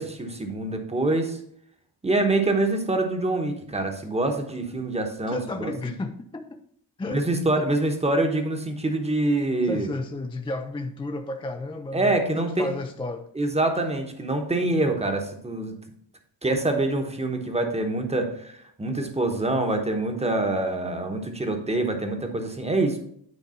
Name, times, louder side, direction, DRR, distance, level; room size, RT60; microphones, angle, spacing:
voice 1, 0.0-1.4 2.0-5.7 7.1-9.9 11.9-12.7 13.4-15.8 16.4-23.0, right 2 dB, 15° right, 1.0 m, -25 dB
voice 2, 5.3-6.6 7.0-7.2 7.6-7.7 9.7-13.3, left 2 dB, 15° left, 0.4 m, -32 dB
9.3 x 3.3 x 5.6 m
wide cardioid pair, 120°, 45 cm